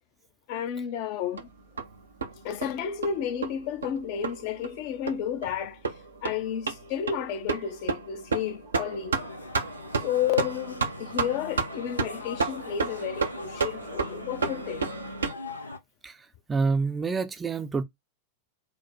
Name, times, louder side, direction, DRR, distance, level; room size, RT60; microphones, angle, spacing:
voice 1, 0.5-1.4 2.4-5.8 6.2-9.2 10.0-14.9, left 8 dB, 45° left, 0.7 m, -31 dB
sound 1, 1.4-15.3, right 4 dB, 70° right, 0.7 m, -32 dB
sound 2, 9.1-15.8, left 3 dB, 80° left, 0.7 m, -42 dB
voice 2, 16.5-17.8, right 4 dB, 15° right, 0.6 m, -27 dB
4.4 x 2.2 x 4.4 m
figure-of-eight pair, 90°, 0 cm